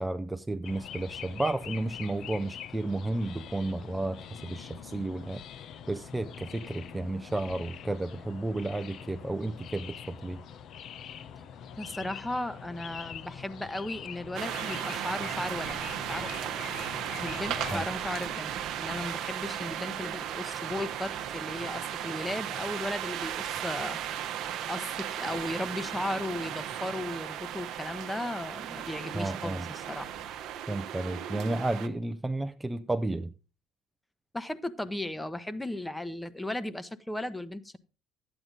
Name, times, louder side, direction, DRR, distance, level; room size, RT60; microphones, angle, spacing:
voice 1, 0.0-5.4 5.9-10.4 17.7-17.8 29.1-29.6 30.7-33.3, right 2 dB, 15° right, 0.6 m, -32 dB
sound 1, 0.6-17.8, left 8 dB, 55° left, 0.8 m, -44 dB
voice 2, 11.8-16.6 17.2-24.0 24.7-30.1 34.3-37.8, left 1 dB, 10° left, 1.0 m, -36 dB
sound 2, 14.3-31.9, right 10 dB, 60° right, 0.9 m, -36 dB
12.0 x 8.9 x 3.9 m
hypercardioid pair, 55°, 0 cm